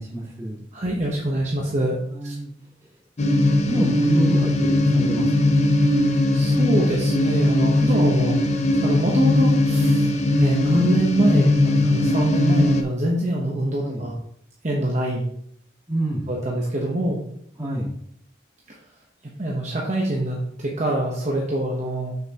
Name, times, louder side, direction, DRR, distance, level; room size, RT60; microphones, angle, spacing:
voice 1, 0.0-0.6 2.1-3.0 3.6-5.6 11.6-11.9 13.8-14.1 15.9-16.3 17.6-18.0, right 1 dB, 15° right, -5 dB, 2.2 m, -28 dB
voice 2, 0.7-2.3 5.9-6.1 6.3-8.4 8.8-11.6 11.9-14.1 14.6-15.3 16.3-17.2 18.7-18.8 19.2-22.2, right 1 dB, 40° right, -3 dB, 0.9 m, -24 dB
sound 1, 3.2-12.8, left 1 dB, 35° left, 0.5 m, -19 dB
6.6 x 6.6 x 2.9 m, 0.70 s
head